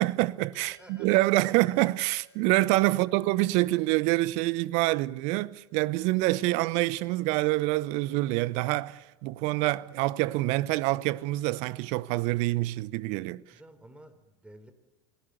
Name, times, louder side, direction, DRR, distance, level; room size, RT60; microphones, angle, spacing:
voice 1, 0.0-13.4, right 19 dB, 50° right, 0.9 m, -26 dB
Bell, 0.5-10.5, left 2 dB, 75° left, 5.1 m, -65 dB
voice 2, 0.7-1.4 13.5-14.7, right 1 dB, 5° right, 3.9 m, -52 dB
29.0 x 19.5 x 8.2 m
figure-of-eight pair, 80°, 15 cm